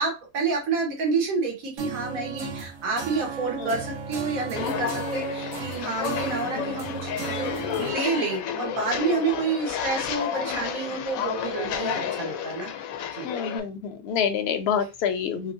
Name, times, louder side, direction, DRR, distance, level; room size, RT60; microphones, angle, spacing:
voice 1, 0.0-12.7 13.1-13.3, right 4 dB, 85° right, 1 dB, 1.4 m, -29 dB
sound 1, 1.8-7.9, right 6 dB, 70° right, 1.1 m, -35 dB
Walk footsteps, 4.5-13.6, left 9 dB, 85° left, 1.0 m, -31 dB
voice 2, 13.2-15.5, left 7 dB, 65° left, 8 dB, 0.6 m, -28 dB
3.0 x 3.0 x 2.6 m, 0.27 s
omnidirectional pair, 1.4 m